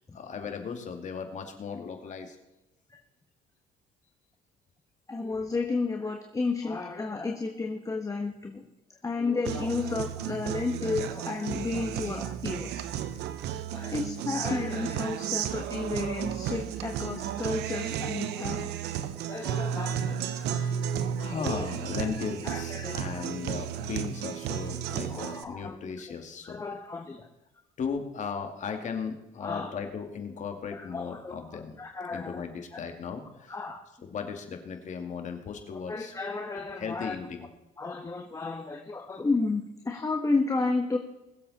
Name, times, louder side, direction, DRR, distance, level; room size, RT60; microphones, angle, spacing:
voice 1, 0.1-2.3 12.0-12.1 20.4-20.9 21.2-26.6 27.8-31.7 32.1-33.5 34.0-36.1 36.8-37.5, left 6 dB, 45° left, 5 dB, 2.4 m, -36 dB
voice 2, 5.1-8.7 9.0-12.8 13.7-18.8 19.3-20.2 21.3-23.3 24.9-25.7 26.4-27.3 29.4-29.7 30.7-32.4 32.7-32.8 33.5-33.8 35.7-37.2 37.8-41.0, left 3 dB, 20° left, 3 dB, 1.3 m, -32 dB
Guitar, 9.4-25.4, right 9 dB, 80° right, 0.9 m, -33 dB
21.5 x 7.8 x 4.2 m, 0.94 s
cardioid pair, 110°, 17 cm